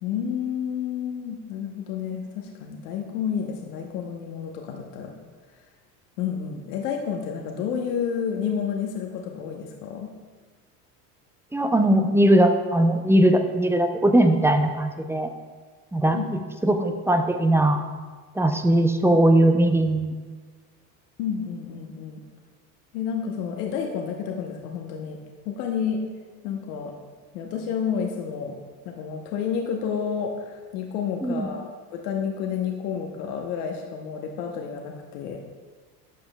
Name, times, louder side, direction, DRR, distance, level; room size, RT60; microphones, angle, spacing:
voice 1, 0.0-5.1 6.2-10.1 16.1-16.2 21.2-22.2 22.9-25.2 25.5-26.0 26.4-26.9 27.3-28.6 28.8-35.4, left 7 dB, 75° left, 1 dB, 1.0 m, -30 dB
voice 2, 11.5-15.3 15.9-16.2 16.6-17.8 18.4-20.1 31.2-31.5, right 1 dB, 5° right, 6 dB, 0.4 m, -19 dB
12.0 x 6.9 x 2.2 m, 1.4 s
hypercardioid pair, 90°, 47 cm